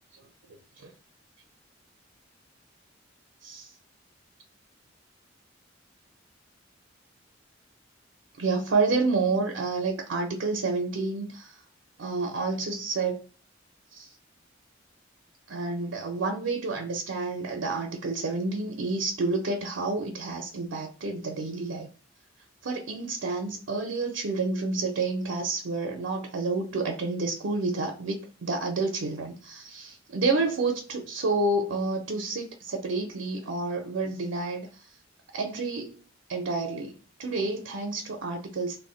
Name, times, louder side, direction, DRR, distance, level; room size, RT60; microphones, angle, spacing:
voice 1, 0.5-0.9 3.4-3.7 8.4-11.6 12.0-13.2 13.9-14.1 15.5-21.9 22.6-34.9 35.3-36.0 36.3-38.8, right 3 dB, 80° right, 0.5 m, -29 dB
2.2 x 2.1 x 3.6 m
head